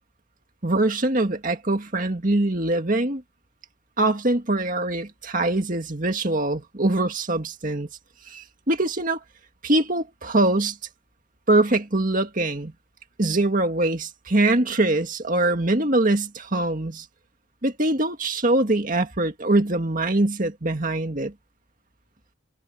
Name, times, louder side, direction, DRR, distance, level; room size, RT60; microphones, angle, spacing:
voice 1, 0.6-3.2 4.0-7.9 8.3-9.2 9.6-10.8 11.5-12.7 13.2-17.1 17.6-21.3, right 2 dB, 40° right, 2.0 m, -23 dB
head